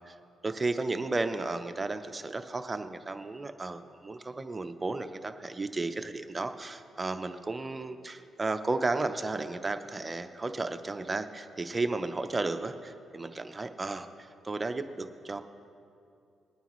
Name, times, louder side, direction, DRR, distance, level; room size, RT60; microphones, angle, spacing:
voice 1, 0.4-15.4, right 3 dB, 25° right, 8 dB, 0.7 m, -33 dB
21.0 x 9.2 x 3.1 m, 2.5 s
cardioid pair, 80°, 0 cm